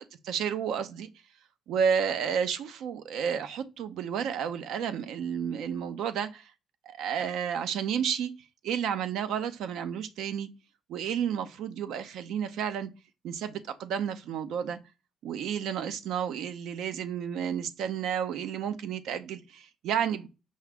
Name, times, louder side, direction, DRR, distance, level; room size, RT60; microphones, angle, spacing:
voice 1, 0.2-1.1 1.7-6.5 6.9-8.3 8.6-10.5 10.9-12.9 13.2-14.8 15.2-20.3, right 8 dB, 85° right, 0.5 m, -31 dB
5.5 x 2.4 x 3.4 m
cardioid pair, 90°, 0 cm